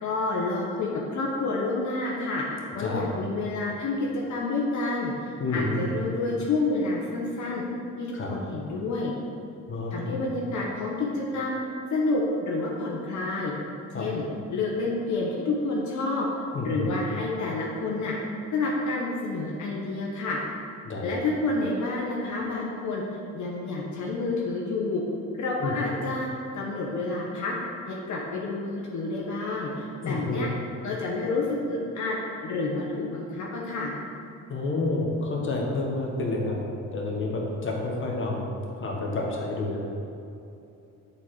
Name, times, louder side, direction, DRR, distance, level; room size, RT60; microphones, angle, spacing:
voice 1, 0.0-2.4 2.7-7.6 8.0-9.1 9.9-11.6 11.9-13.5 14.0-14.2 14.5-16.3 16.6-18.1 18.5-20.4 21.0-23.0 23.3-25.0 25.3-26.3 26.5-27.5 27.9-30.5 30.8-32.2 32.4-33.9, left 3 dB, 70° left, -3 dB, 1.1 m, -29 dB
voice 2, 5.4-5.8 8.1-8.3 9.7-10.1 13.9-14.1 16.5-16.9 20.8-21.1 25.6-25.7 30.0-30.4 34.5-36.6 36.9-38.4 38.8-39.8, left 2 dB, 40° left, -1 dB, 1.4 m, -29 dB
6.9 x 4.3 x 4.9 m, 2.8 s
cardioid pair, 90°, 30 cm